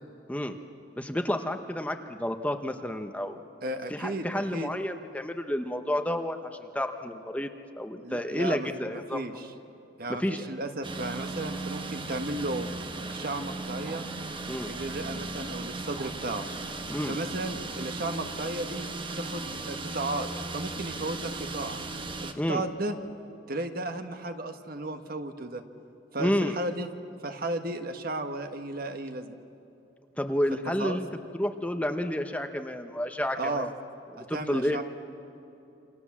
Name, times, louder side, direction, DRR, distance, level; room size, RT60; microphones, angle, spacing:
voice 1, 1.0-3.4 3.9-7.5 7.8-9.2 10.1-10.5 14.5-14.7 16.9-17.2 22.3-22.6 26.2-26.6 30.2-31.1 31.4-33.7 34.1-34.8, left 1 dB, 5° left, 6 dB, 0.9 m, -30 dB
voice 2, 3.6-4.7 8.0-8.7 8.9-9.5 10.0-12.7 13.1-14.1 14.7-16.5 17.1-20.3 20.5-21.8 22.2-22.9 23.5-25.6 26.1-26.9 27.2-29.3 30.6-31.0 33.4-33.7 34.2-34.8, right 2 dB, 50° right, 7 dB, 1.4 m, -34 dB
sound 1, 10.8-22.3, right 3 dB, 25° right, 1.2 m, -37 dB
28.0 x 26.0 x 7.4 m, 2.9 s
head